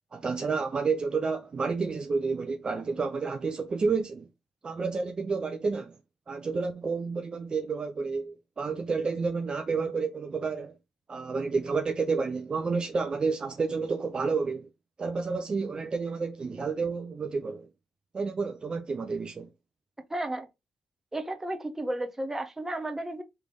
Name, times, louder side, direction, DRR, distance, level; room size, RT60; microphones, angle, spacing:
voice 1, 0.1-4.3 4.6-6.0 6.3-10.8 11.1-14.7 15.0-17.7 18.1-19.5, right 4 dB, 40° right, 0.6 m, -30 dB
voice 2, 20.1-20.5 21.1-23.2, right 1 dB, 20° right, 1.0 m, -33 dB
3.3 x 3.3 x 3.6 m
supercardioid pair, 55°, 2 cm